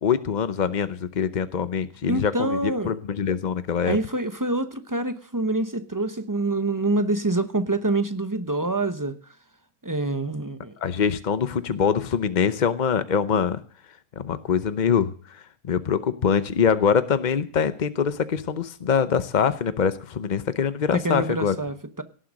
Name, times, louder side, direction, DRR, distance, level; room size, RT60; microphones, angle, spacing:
voice 1, 0.0-4.0 10.8-13.6 14.2-21.6, left 7 dB, 65° left, 0.4 m, -24 dB
voice 2, 2.1-2.9 3.8-9.2 9.8-10.7 20.9-22.0, right 2 dB, 20° right, 0.5 m, -26 dB
17.5 x 7.8 x 6.4 m
omnidirectional pair, 1.9 m